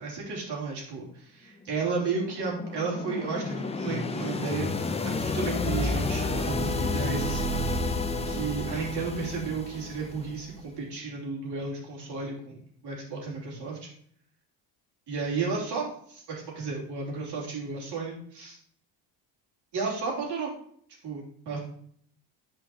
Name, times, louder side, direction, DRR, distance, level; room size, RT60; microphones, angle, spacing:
voice 1, 0.0-7.6 8.3-12.6 12.8-13.9 15.1-18.6 19.7-20.5 21.0-21.6, right 4 dB, 65° right, -3 dB, 3.1 m, -33 dB
sound 1, 1.7-10.6, left 2 dB, 15° left, 0.5 m, -31 dB
9.2 x 5.0 x 2.9 m, 0.64 s
cardioid pair, 115°, 45 cm